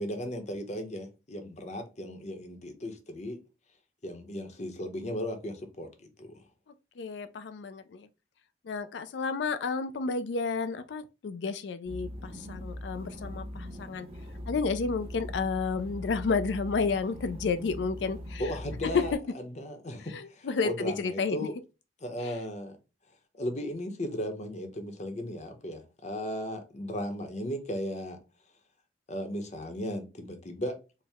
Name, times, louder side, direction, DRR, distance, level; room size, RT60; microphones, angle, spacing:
voice 1, 0.0-3.4 4.0-6.4 18.4-21.6 22.0-22.7 23.3-28.2 29.1-30.8, equal, 40° left, 0.8 m, -36 dB
voice 2, 7.0-8.1 8.7-14.1 14.5-18.4 18.9-19.0 20.1-21.4 22.2-22.3, left 4 dB, 80° left, 0.4 m, -31 dB
sound 1, 11.9-19.1, equal, 35° right, 0.7 m, -41 dB
4.5 x 2.1 x 3.4 m
head